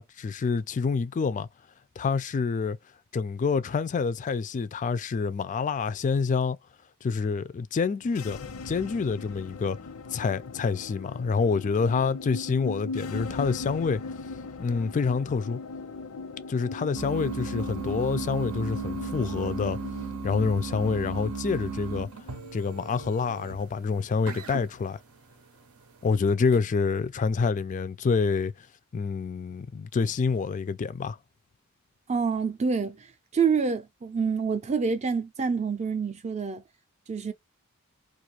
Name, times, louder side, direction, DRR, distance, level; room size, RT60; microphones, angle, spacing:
voice 1, 0.0-1.5 2.0-2.8 3.1-6.6 7.0-8.4 8.7-9.8 10.1-14.0 14.6-15.6 16.5-19.8 20.2-22.1 22.5-25.0 26.0-28.5 28.9-31.2, left 5 dB, 35° left, 0.3 m, -27 dB
sound 1, 8.0-23.6, left 3 dB, 85° left, 0.6 m, -39 dB
sound 2, 16.9-26.2, right 5 dB, 75° right, 0.6 m, -36 dB
voice 2, 32.1-36.6 37.1-37.3, right 5 dB, 30° right, 0.5 m, -27 dB
2.5 x 2.4 x 2.9 m
head